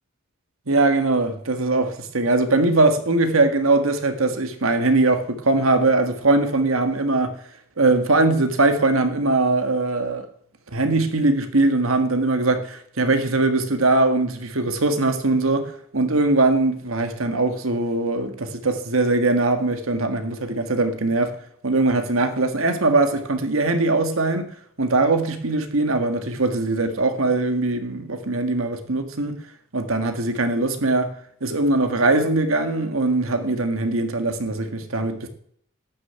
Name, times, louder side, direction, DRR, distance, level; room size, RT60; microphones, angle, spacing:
voice 1, 0.7-7.4 7.8-10.3 10.7-21.4 21.6-24.5 24.8-29.4 29.7-31.1 31.4-35.3, right 2 dB, 80° right, 1.7 m, -21 dB
12.5 x 6.8 x 8.8 m
head